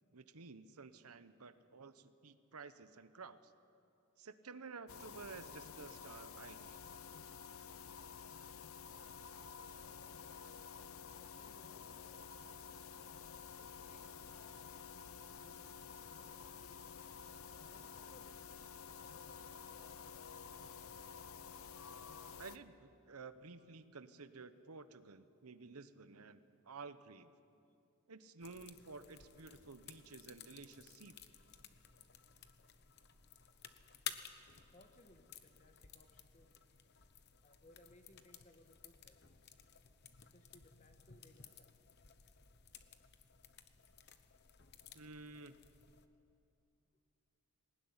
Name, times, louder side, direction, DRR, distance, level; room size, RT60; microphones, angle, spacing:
voice 1, 0.1-3.5 4.2-6.8 22.4-27.3 28.1-31.2 44.9-45.6, right 4 dB, 90° right, 12 dB, 1.0 m, -53 dB
sound 1, 4.9-22.6, left 6 dB, 75° left, 0.8 m, -51 dB
voice 2, 10.8-12.3 13.5-14.3 14.6-16.8 17.6-19.3 34.7-36.5 37.4-39.2 40.3-41.7 44.0-44.1, left 1 dB, 35° left, 6 dB, 1.6 m, -66 dB
sound 2, 28.4-46.1, left 9 dB, 50° left, 1.0 m, -55 dB
20.5 x 19.0 x 9.7 m, 2.6 s
head